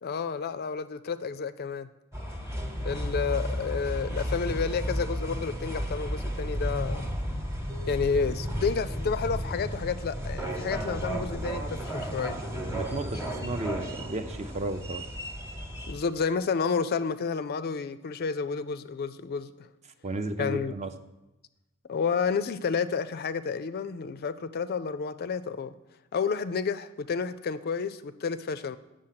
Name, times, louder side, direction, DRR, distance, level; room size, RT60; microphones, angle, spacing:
voice 1, 0.0-1.9 2.8-7.2 7.9-12.4 15.9-19.7 20.4-20.7 21.9-25.7 26.1-28.8, left 5 dB, 45° left, 0.4 m, -30 dB
sound 1, 2.1-15.9, equal, 10° right, 1.1 m, -33 dB
voice 2, 12.7-15.0 20.0-20.9, right 2 dB, 30° right, 0.5 m, -33 dB
7.8 x 6.4 x 5.7 m
head